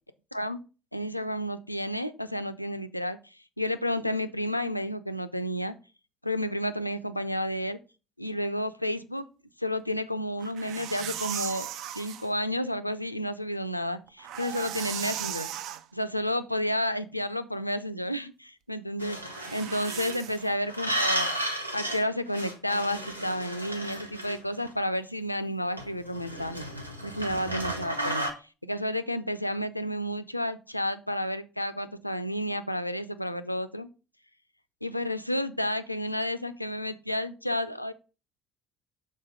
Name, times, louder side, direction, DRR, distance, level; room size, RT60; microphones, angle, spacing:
voice 1, 0.9-3.2 3.6-5.7 6.2-7.8 8.2-9.2 9.6-11.7 11.9-15.5 15.9-19.2 19.5-21.3 21.7-26.7 27.0-28.3 28.6-33.9 34.8-37.9, equal, 90° left, 11 dB, 0.4 m, -31 dB
sound 1, 10.4-12.3 14.1-15.8 19.3-20.6, right 11 dB, 55° right, 0.4 m, -37 dB
sound 2, 19.0-20.2 20.7-22.0 22.3-24.7 25.8-28.3, right 1 dB, 90° right, 0.8 m, -33 dB
6.4 x 4.0 x 4.9 m, 0.32 s
figure-of-eight pair, 55°, 0 cm